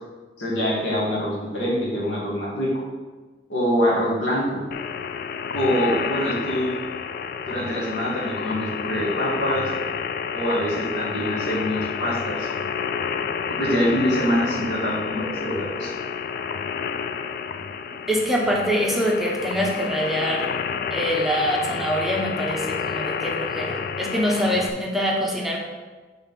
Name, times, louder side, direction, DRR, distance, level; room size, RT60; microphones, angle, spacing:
voice 1, 0.4-2.7 3.5-4.6 5.5-6.7 7.5-9.7 10.3-12.5 13.5-15.9, equal, 85° left, -5 dB, 2.0 m, -24 dB
sound 1, 4.7-24.7, left 6 dB, 55° left, 0.3 m, -30 dB
voice 2, 18.1-20.5 20.9-25.6, equal, ahead, -2 dB, 0.8 m, -24 dB
5.5 x 3.9 x 5.7 m, 1.4 s
head